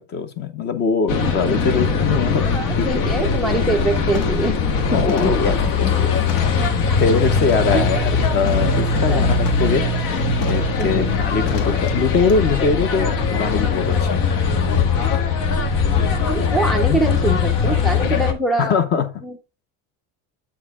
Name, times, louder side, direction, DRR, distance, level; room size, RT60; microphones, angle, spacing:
voice 1, 0.1-2.4 2.8-3.0 4.8-6.1 6.5-9.8 10.4-14.2 16.9-17.0 18.6-19.1, left 5 dB, 30° left, 0.7 m, -22 dB
sound 1, 1.1-18.3, left 5 dB, 65° left, 1.4 m, -20 dB
sound 2, 2.3-2.4 2.9-3.1 3.5-3.8 4.1-4.5 5.1-6.7 7.4-7.8 8.5-9.7 10.4-10.8 11.5-11.9 12.3-12.4, left 6 dB, 85° left, 1.9 m, -35 dB
voice 2, 2.4-4.6 5.0-5.3 5.6-5.9 7.7-7.9 9.1-9.2 10.8-11.1 16.3-18.8 19.2-19.4, right 2 dB, ahead, 0.4 m, -24 dB
8.4 x 4.6 x 3.5 m
cardioid pair, 180°, 36 cm